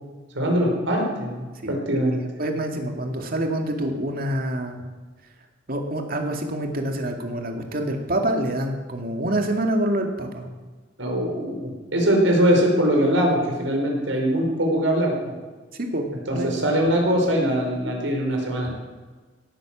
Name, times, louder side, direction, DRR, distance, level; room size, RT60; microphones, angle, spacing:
voice 1, 0.3-2.2 11.0-15.3 16.3-18.8, equal, 90° right, 0 dB, 5.0 m, -22 dB
voice 2, 1.6-2.0 2.4-4.8 5.7-10.5 15.8-16.5 18.6-18.8, right 1 dB, 50° right, 3 dB, 2.2 m, -26 dB
17.5 x 10.0 x 7.5 m, 1.4 s
head